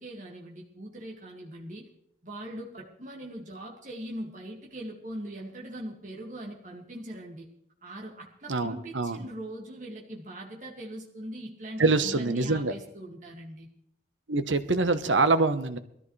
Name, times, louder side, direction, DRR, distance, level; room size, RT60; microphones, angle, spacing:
voice 1, 0.0-1.9 2.2-7.5 7.8-13.7, right 1 dB, 40° right, -3 dB, 2.2 m, -41 dB
voice 2, 8.5-9.2 11.8-12.7 14.3-15.8, right 3 dB, 75° right, 10 dB, 1.0 m, -25 dB
21.5 x 13.5 x 3.3 m, 0.73 s
head